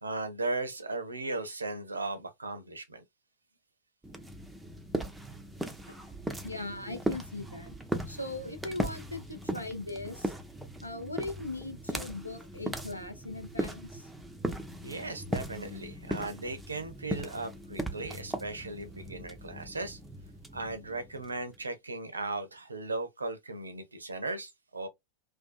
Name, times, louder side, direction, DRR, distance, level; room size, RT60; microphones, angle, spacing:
voice 1, 0.0-3.0 14.8-20.0 20.5-24.9, right 2 dB, 80° right, 0.5 m, -37 dB
sound 1, 4.0-21.6, right 1 dB, 5° right, 0.5 m, -38 dB
voice 2, 6.4-7.8 8.1-10.3 10.8-14.1, left 2 dB, 85° left, 0.6 m, -39 dB
2.6 x 2.2 x 2.3 m
figure-of-eight pair, 90°, 0 cm